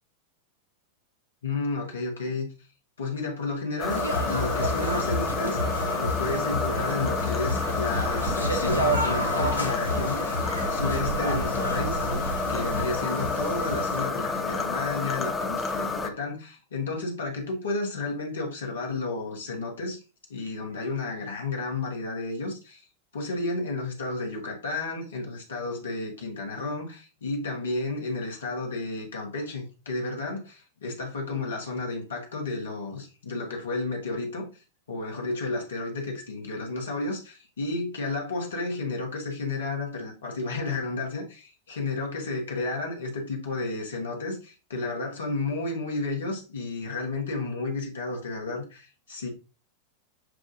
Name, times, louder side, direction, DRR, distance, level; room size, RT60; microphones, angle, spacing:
voice 1, 1.4-2.5 3.0-5.6 6.0-10.4 10.7-12.0 12.5-20.0 20.3-22.9 23.1-34.5 34.9-49.3, left 3 dB, 65° left, 1.3 m, -32 dB
sound 1, 3.8-16.1, left 4 dB, 15° left, 0.6 m, -30 dB
sound 2, 3.9-14.0, equal, 90° left, 0.7 m, -29 dB
7.4 x 2.5 x 2.6 m
figure-of-eight pair, 90°, 0 cm